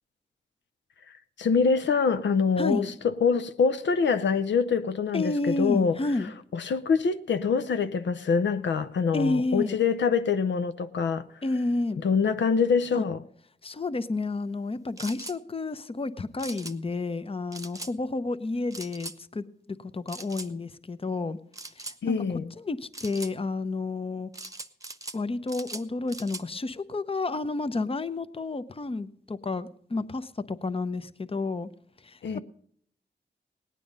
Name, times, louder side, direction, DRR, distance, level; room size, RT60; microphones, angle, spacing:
voice 1, 1.4-6.0 6.5-11.3 12.0-13.2 22.0-22.5 32.2-32.4, left 5 dB, 80° left, 0.6 m, -25 dB
voice 2, 2.6-2.9 5.1-6.3 9.1-9.8 11.4-12.0 12.9-13.0 13.6-21.4 21.8-22.2 22.6-24.3 25.1-31.7 32.0-32.4, left 3 dB, 30° left, 0.7 m, -30 dB
sound 1, 15.0-15.4 16.4-16.7 17.5-17.9 18.7-19.2 20.1-20.5 21.5-22.0 22.9-23.3 24.3-25.2 25.5-26.4, right 2 dB, 20° right, 0.9 m, -40 dB
18.0 x 9.2 x 5.3 m
cardioid pair, 65°, 18 cm